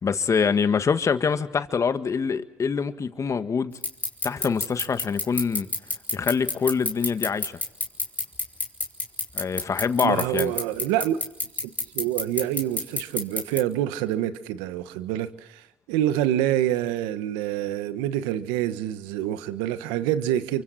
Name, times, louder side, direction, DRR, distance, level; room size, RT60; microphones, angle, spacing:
voice 1, 0.0-3.7 4.2-5.7 6.1-7.6 9.3-10.5, left 6 dB, 45° left, 10 dB, 1.8 m, -25 dB
sound 1, 3.8-13.6, left 3 dB, 20° left, 4.0 m, -26 dB
voice 2, 10.0-11.2 11.9-20.6, right 12 dB, 90° right, 12 dB, 1.3 m, -26 dB
29.5 x 24.5 x 4.3 m, 0.82 s
supercardioid pair, 60°, 7 cm